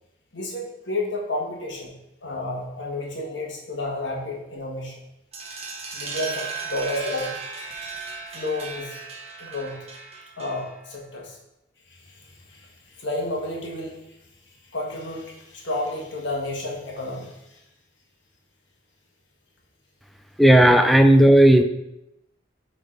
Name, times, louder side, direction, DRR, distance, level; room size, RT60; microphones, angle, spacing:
voice 1, 0.3-1.9 2.2-4.9 5.9-7.3 8.3-9.0 9.4-9.8 10.4-11.4 11.9-14.0 14.7-17.6, left 2 dB, 65° left, -1 dB, 1.5 m, -31 dB
sound 1, 5.3-10.9, right 4 dB, 30° right, 1.1 m, -36 dB
voice 2, 20.4-21.6, right 1 dB, ahead, 6 dB, 0.3 m, -13 dB
8.5 x 3.9 x 3.8 m, 0.86 s
head